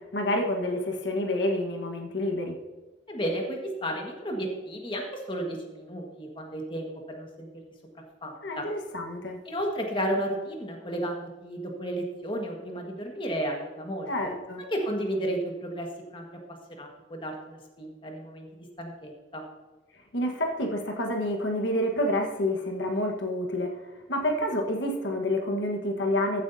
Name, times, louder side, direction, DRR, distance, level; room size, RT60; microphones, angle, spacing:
voice 1, 0.1-2.5 8.4-9.4 14.1-14.6 20.1-23.8 24.1-26.4, left 1 dB, 75° left, 2 dB, 1.4 m, -28 dB
voice 2, 3.1-7.5 8.2-8.6 9.5-14.1 14.7-16.2 16.7-19.4, right 1 dB, 30° left, 1 dB, 1.6 m, -33 dB
15.0 x 8.2 x 2.7 m, 1.2 s
head